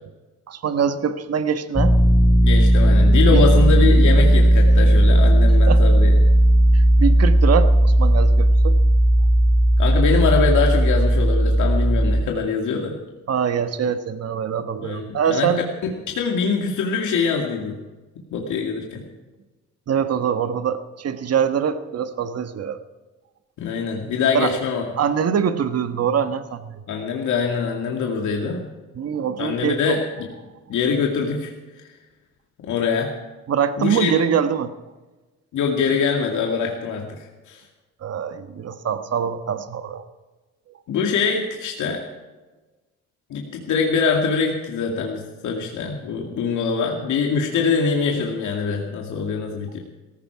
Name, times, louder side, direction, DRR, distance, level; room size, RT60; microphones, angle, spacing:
voice 1, 0.5-2.0 3.3-3.4 5.7-5.8 6.7-8.8 13.3-15.6 19.9-22.8 24.3-24.5 25.0-26.8 28.9-30.0 33.5-34.7 38.0-40.0, right 7 dB, 55° right, 9 dB, 1.4 m, -23 dB
sound 1, 1.8-12.2, right 1 dB, 10° left, 2.8 m, -15 dB
voice 2, 2.4-6.2 9.8-12.9 14.8-15.5 16.1-17.8 18.2-19.0 23.6-24.8 26.9-28.7 29.4-30.3 30.7-31.5 31.8-31.9 32.6-33.1 33.8-34.1 35.5-37.2 37.5-37.6 40.9-42.0 43.3-49.8, left 5 dB, 75° left, 0 dB, 2.4 m, -23 dB
17.5 x 15.5 x 4.8 m, 1.2 s
cardioid pair, 90°, 30 cm